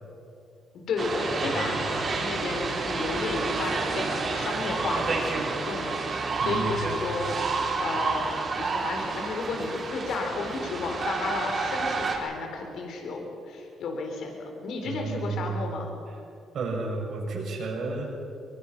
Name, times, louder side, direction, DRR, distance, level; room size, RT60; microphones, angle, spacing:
voice 1, 0.7-15.9, left 3 dB, 75° left, 2 dB, 4.1 m, -33 dB
sound 1, 1.0-12.2, right 4 dB, 45° right, 4.8 m, -29 dB
voice 2, 1.4-1.8 6.4-6.9 14.8-15.5 16.5-18.1, right 3 dB, 65° right, -1 dB, 6.8 m, -32 dB
23.0 x 23.0 x 6.1 m, 2.6 s
cardioid pair, 90°, 0 cm